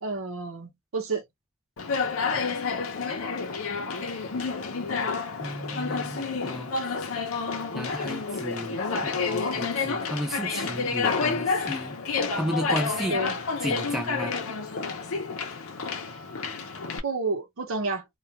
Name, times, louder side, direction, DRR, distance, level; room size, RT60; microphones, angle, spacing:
voice 1, 0.0-1.2 13.1-13.4 17.0-18.1, right 3 dB, 85° right, 0.8 m, -30 dB
Conversation, 1.8-17.0, left 4 dB, 85° left, 0.7 m, -29 dB
voice 2, 5.4-6.7 7.7-8.8 9.0-12.0 12.3-13.2 13.6-14.4, equal, ahead, 0.6 m, -33 dB
2.3 x 2.2 x 2.8 m
head